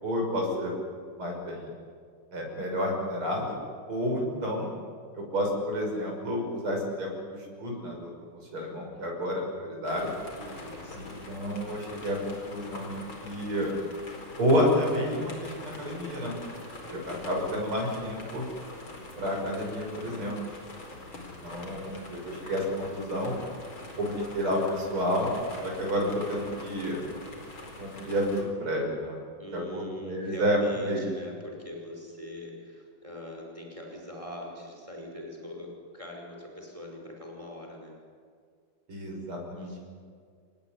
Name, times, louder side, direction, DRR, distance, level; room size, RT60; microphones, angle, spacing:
voice 1, 0.0-0.7 1.2-1.7 2.3-3.6 3.9-4.7 5.1-7.1 7.6-8.1 8.5-10.1 10.9-13.7 14.4-16.3 16.9-18.4 19.2-20.4 21.1-23.3 24.0-25.3 25.6-27.0 27.8-29.2 29.5-31.1 38.9-39.8, equal, 90° right, 0 dB, 7.0 m, -30 dB
sound 1, 9.8-28.4, left 2 dB, 70° left, 5.3 m, -44 dB
voice 2, 10.4-11.2 29.4-37.9 39.6-39.8, left 1 dB, 15° right, 0 dB, 5.6 m, -43 dB
29.0 x 19.5 x 9.9 m, 2.1 s
omnidirectional pair, 2.3 m